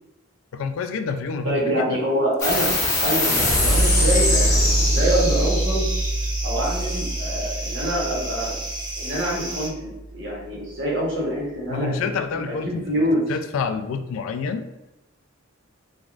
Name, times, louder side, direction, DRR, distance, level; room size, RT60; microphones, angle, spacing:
voice 1, 0.5-2.0 11.7-12.8 13.3-14.7, left 5 dB, 75° left, 8 dB, 0.3 m, -28 dB
voice 2, 1.4-2.7 3.0-5.8 6.4-8.5 9.0-12.2 12.5-13.2, right 1 dB, 65° right, -4 dB, 1.1 m, -25 dB
sound 1, 2.4-9.3, equal, 15° left, 1.0 m, -22 dB
sound 2, 4.5-9.7, right 2 dB, 20° right, 0.5 m, -33 dB
3.4 x 2.3 x 2.4 m, 0.92 s
head